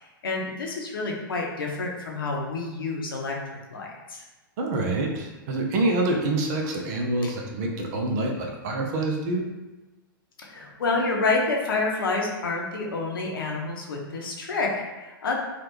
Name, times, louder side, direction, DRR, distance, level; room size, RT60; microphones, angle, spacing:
voice 1, 0.0-3.4 3.7-4.2 7.2-7.3 10.4-15.4, left 3 dB, 75° left, -1 dB, 0.7 m, -28 dB
voice 2, 4.6-9.4, right 2 dB, 50° right, 1 dB, 0.7 m, -26 dB
3.3 x 2.4 x 3.0 m, 1.1 s
hypercardioid pair, 110°, 12 cm